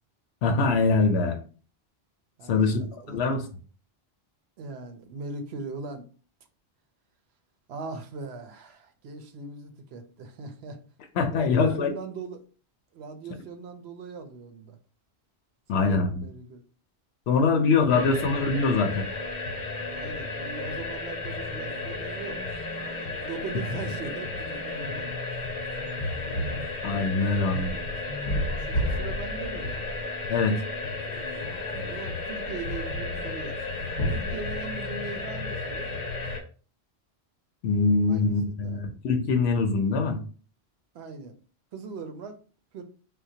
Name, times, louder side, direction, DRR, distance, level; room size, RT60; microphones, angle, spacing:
voice 1, 0.4-1.4 2.5-2.8 3.1-3.4 11.2-11.9 15.7-16.2 17.3-19.1 26.8-27.7 30.3-30.6 37.6-40.2, left 4 dB, 85° left, 5 dB, 0.8 m, -23 dB
voice 2, 2.4-3.2 4.6-6.1 7.7-10.8 11.3-12.4 12.9-14.8 15.7-16.6 17.5-18.1 19.9-22.4 23.2-25.1 28.6-29.9 31.8-33.7 34.1-35.9 38.1-38.8 40.9-41.4 41.7-42.4 42.7-42.8, right 4 dB, 80° right, 7 dB, 0.9 m, -40 dB
sound 1, 17.9-36.4, left 2 dB, 50° left, 0.9 m, -32 dB
4.4 x 2.1 x 2.7 m, 0.39 s
omnidirectional pair, 1.1 m